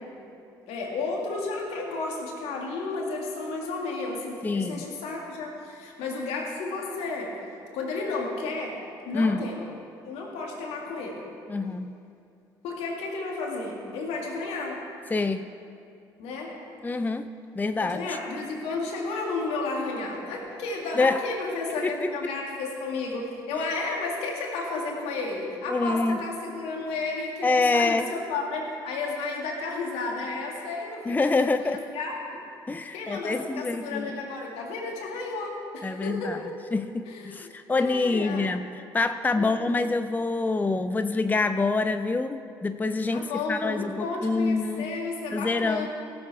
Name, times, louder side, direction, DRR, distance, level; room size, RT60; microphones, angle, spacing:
voice 1, 0.7-7.4 7.7-9.7 10.0-11.3 12.6-14.8 16.2-16.6 17.8-32.4 32.9-36.5 37.1-37.5 37.8-38.4 39.3-39.7 43.1-45.9, left 3 dB, 75° left, 0 dB, 2.0 m, -32 dB
voice 2, 4.4-4.9 9.1-9.4 11.5-12.0 15.1-15.5 16.8-17.3 17.5-18.2 21.0-21.2 21.8-22.3 23.5-23.6 25.7-26.2 27.4-28.1 31.1-31.8 32.7-34.2 35.8-36.4 36.7-44.9 45.3-45.9, left 3 dB, 15° left, 10 dB, 0.4 m, -26 dB
16.5 x 7.3 x 4.7 m, 2.6 s
hypercardioid pair, 55°, 11 cm